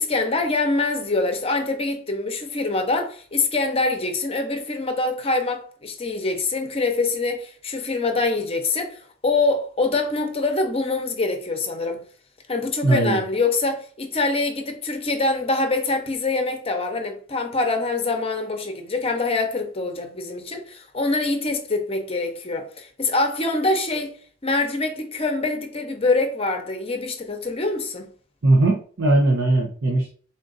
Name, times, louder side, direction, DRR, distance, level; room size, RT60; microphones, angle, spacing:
voice 1, 0.0-12.0 12.5-24.1 24.4-28.1, left 3 dB, 30° left, 0.7 m, -24 dB
voice 2, 12.8-13.2 28.4-30.1, right 2 dB, 85° right, 0.8 m, -19 dB
3.8 x 2.5 x 3.9 m
head